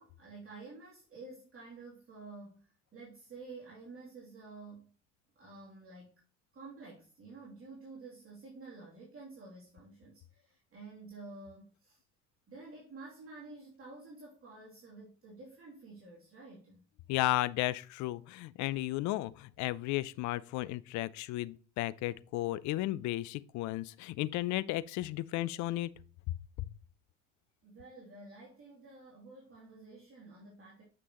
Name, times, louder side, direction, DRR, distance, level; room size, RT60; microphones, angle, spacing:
voice 1, 0.0-4.9 5.3-6.2 6.5-12.0 12.5-16.9 27.6-30.8, right 3 dB, 35° right, 2.9 m, -50 dB
voice 2, 17.1-25.9, left 17 dB, 50° left, 0.5 m, -34 dB
7.9 x 6.0 x 2.9 m
hypercardioid pair, 75°, 37 cm